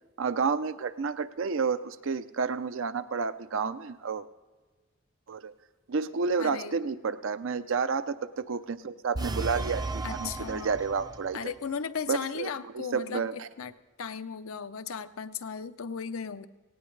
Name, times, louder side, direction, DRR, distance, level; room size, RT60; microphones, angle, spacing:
voice 1, 0.2-4.3 5.3-5.5 5.9-11.5 12.1-12.5 12.7-13.5, right 5 dB, 65° right, 13 dB, 0.6 m, -30 dB
voice 2, 6.4-6.8 10.0-10.7 11.3-16.5, left 6 dB, 85° left, 11 dB, 0.7 m, -36 dB
sound 1, 9.1-11.4, right 3 dB, 20° right, 0.5 m, -34 dB
18.0 x 17.5 x 3.2 m, 1.3 s
head